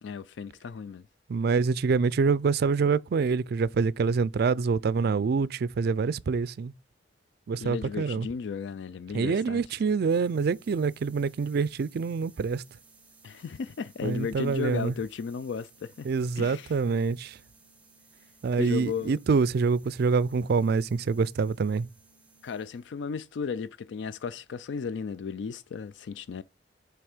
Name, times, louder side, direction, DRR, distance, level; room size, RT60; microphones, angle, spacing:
voice 1, 0.0-1.1 7.6-9.6 13.2-16.1 16.4-16.8 18.6-19.2 22.4-26.4, left 6 dB, 75° left, 0.4 m, -35 dB
voice 2, 1.3-6.7 7.5-8.3 9.1-12.6 14.0-14.9 16.0-17.4 18.4-21.9, right 5 dB, 60° right, 0.4 m, -26 dB
sound 1, 10.0-23.0, right 4 dB, 10° right, 1.4 m, -59 dB
7.9 x 3.4 x 4.9 m
head